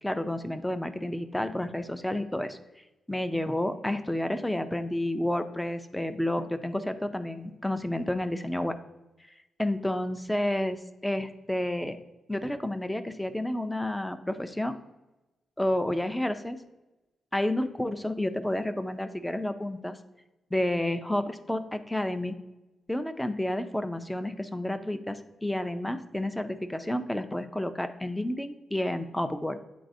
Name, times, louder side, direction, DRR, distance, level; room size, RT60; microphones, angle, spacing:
voice 1, 0.0-2.6 3.1-8.8 9.6-12.0 12.3-14.8 15.6-16.6 17.3-20.0 20.5-22.3 22.9-29.6, left 1 dB, 5° left, 10 dB, 0.3 m, -30 dB
9.2 x 4.0 x 2.6 m, 1.0 s
wide cardioid pair, 160°, 0 cm